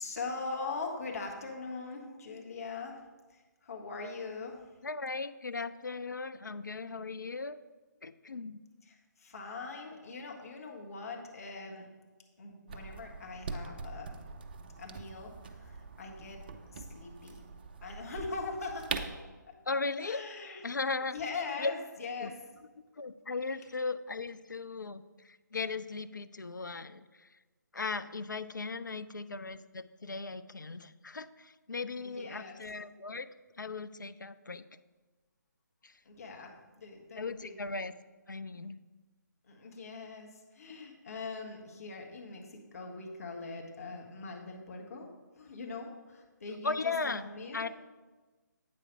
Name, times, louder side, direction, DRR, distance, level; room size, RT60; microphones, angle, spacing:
voice 1, 0.0-3.0 3.3-4.7 8.8-11.9 12.4-14.2 14.8-17.4 17.8-19.2 19.5-19.6 20.0-20.7 21.0-22.6 32.0-32.6 36.0-37.6 38.5-38.6 39.5-45.1 45.4-47.7, left 4 dB, 50° left, 0 dB, 1.5 m, -42 dB
voice 2, 4.8-7.6 8.0-8.6 19.7-20.2 20.6-21.1 21.6-21.7 22.2-22.3 23.0-27.0 27.7-33.3 33.6-34.6 35.8-35.9 37.2-37.9 38.3-38.8 46.6-47.3 47.5-47.7, left 4 dB, 75° left, 13 dB, 0.4 m, -37 dB
sound 1, 12.7-19.2, right 4 dB, 30° right, 0.5 m, -43 dB
8.3 x 5.0 x 4.6 m, 1.3 s
figure-of-eight pair, 145°, 10 cm